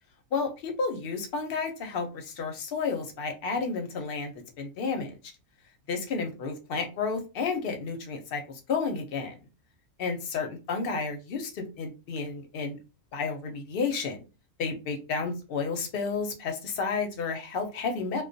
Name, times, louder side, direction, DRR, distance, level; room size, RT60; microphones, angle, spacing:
voice 1, 0.3-5.2 5.9-9.4 10.0-12.8 13.1-14.2 14.6-18.2, left 4 dB, 60° left, 5 dB, 0.7 m, -31 dB
2.2 x 2.2 x 2.6 m, 0.30 s
omnidirectional pair, 1.4 m